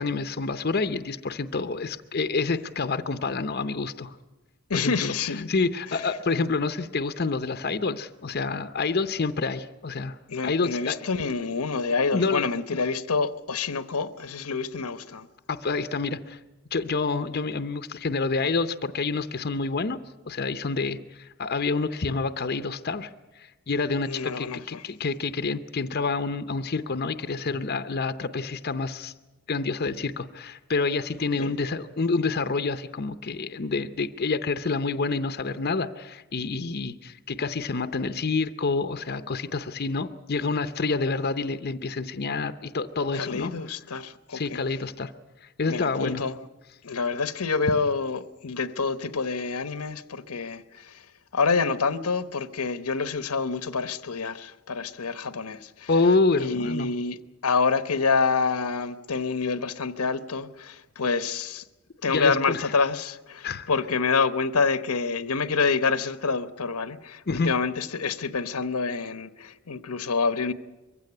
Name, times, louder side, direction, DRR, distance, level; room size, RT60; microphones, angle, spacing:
voice 1, 0.0-4.1 4.7-5.1 5.5-10.2 10.4-11.0 12.1-12.5 15.5-16.4 16.7-20.0 20.3-29.1 29.5-43.5 44.3-45.1 45.4-46.2 55.9-56.9 62.0-62.6 63.4-63.7 67.3-67.5, left 4 dB, 45° left, 0.7 m, -28 dB
voice 2, 4.7-5.5 5.9-6.0 10.3-15.3 24.1-24.8 31.3-31.5 43.1-44.6 45.7-46.3 46.8-51.0 51.3-55.9 56.4-61.6 62.0-70.5, left 4 dB, 85° left, 1.0 m, -27 dB
23.0 x 16.0 x 9.6 m
head